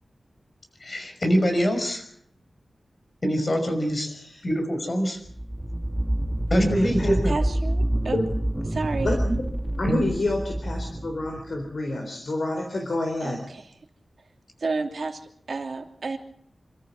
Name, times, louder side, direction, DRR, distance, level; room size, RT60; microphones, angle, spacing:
voice 1, 0.8-2.0 3.2-4.1 4.4-5.2 6.5-7.3 9.8-10.0, equal, 40° left, 6 dB, 5.6 m, -24 dB
voice 2, 4.0-4.4 6.6-7.1 8.1-8.3 9.0-9.4 9.8-13.4, left 1 dB, 60° left, 2 dB, 4.0 m, -28 dB
sound 1, 5.2-11.7, right 1 dB, ahead, 1.7 m, -27 dB
voice 3, 7.2-8.2 8.7-9.1 13.2-13.7 14.6-16.2, right 3 dB, 60° right, 4 dB, 2.9 m, -31 dB
27.0 x 14.0 x 7.2 m, 0.67 s
wide cardioid pair, 115°, 0 cm